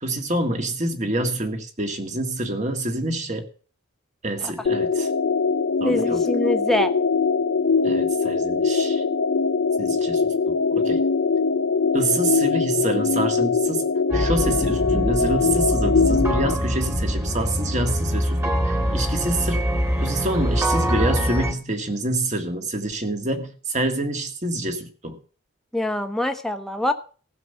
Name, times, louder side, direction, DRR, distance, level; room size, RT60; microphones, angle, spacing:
voice 1, 0.0-3.5 4.2-5.1 5.8-6.2 7.8-9.0 9.8-11.0 11.9-13.8 14.1-19.6 20.0-25.2, right 1 dB, 35° right, 1.8 m, -27 dB
sound 1, 4.7-16.5, left 4 dB, 60° left, 0.6 m, -22 dB
voice 2, 5.8-6.9 25.7-26.9, left 1 dB, ahead, 1.0 m, -24 dB
sound 2, 14.1-21.5, equal, 15° right, 2.0 m, -24 dB
15.5 x 6.8 x 6.8 m
head